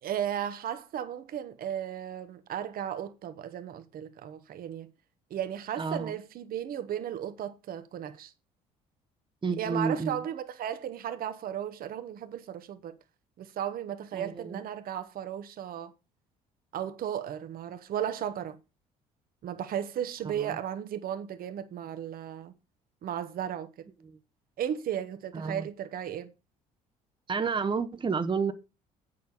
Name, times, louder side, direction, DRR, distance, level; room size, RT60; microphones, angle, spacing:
voice 1, 0.0-4.9 5.3-8.3 9.6-13.0 13.4-15.9 16.7-18.6 19.4-22.5 23.0-23.9 24.6-26.3, right 10 dB, 60° right, 1.2 m, -35 dB
voice 2, 5.8-6.2 9.4-10.2 14.1-14.6 20.2-20.6 24.0-24.2 25.3-25.7 27.3-28.5, right 5 dB, 30° right, 1.1 m, -31 dB
8.2 x 6.9 x 5.3 m
hypercardioid pair, 60°, 17 cm